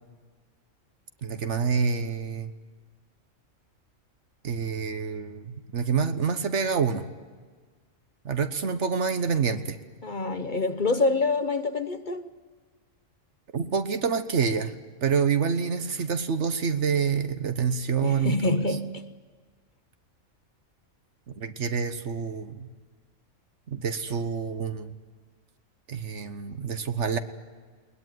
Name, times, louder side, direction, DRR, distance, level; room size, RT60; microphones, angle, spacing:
voice 1, 1.2-2.5 4.4-7.1 8.2-9.8 13.5-14.7 15.0-18.8 21.3-22.7 23.7-24.9 25.9-27.2, right 6 dB, 65° right, 9 dB, 1.4 m, -27 dB
voice 2, 10.0-12.3 18.0-19.0, left 3 dB, 40° left, 9 dB, 1.0 m, -26 dB
21.0 x 20.0 x 9.4 m, 1.5 s
omnidirectional pair, 1.3 m